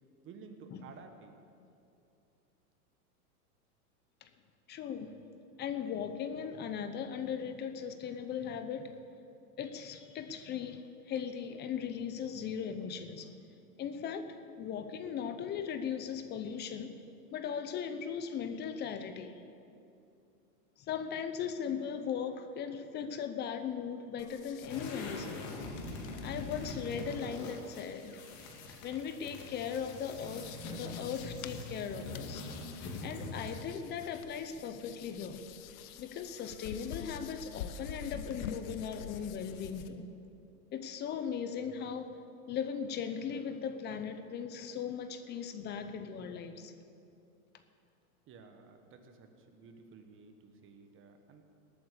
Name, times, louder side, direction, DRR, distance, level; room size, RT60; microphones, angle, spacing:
voice 1, 0.2-1.4 48.3-51.4, right 5 dB, 25° right, 6 dB, 1.4 m, -53 dB
voice 2, 4.7-5.2 5.6-8.9 9.6-13.3 13.8-17.0 17.3-19.4 20.8-25.5 26.2-28.2 28.8-32.5 33.0-35.4 36.0-40.1 40.7-42.1 42.5-46.7, left 7 dB, 25° left, 9 dB, 0.7 m, -38 dB
sound 1, 24.2-39.9, left 8 dB, 60° left, 1.0 m, -48 dB
sound 2, 24.6-33.7, left 2 dB, 40° left, 2.6 m, -43 dB
19.0 x 8.7 x 6.8 m, 2.7 s
supercardioid pair, 135°, 46 cm